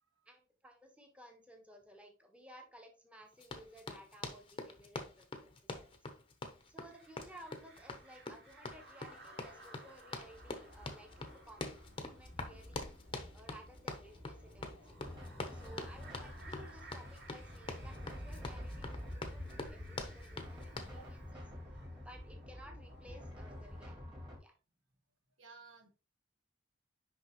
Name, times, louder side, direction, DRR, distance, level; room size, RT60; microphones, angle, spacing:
voice 1, 0.3-6.1 6.7-11.7 12.0-12.9 13.3-15.0 15.5-21.4 22.0-24.0 24.4-24.5, right 1 dB, 5° right, 3 dB, 1.1 m, -57 dB
Run, 3.4-21.0, left 2 dB, 25° left, 0.9 m, -45 dB
sound 1, 6.8-23.8, equal, 55° right, 3.4 m, -52 dB
sound 2, 15.0-24.4, left 1 dB, 20° right, 2.0 m, -49 dB
voice 2, 25.4-25.9, right 5 dB, 75° right, 5 dB, 1.3 m, -58 dB
6.3 x 5.4 x 3.1 m, 0.32 s
head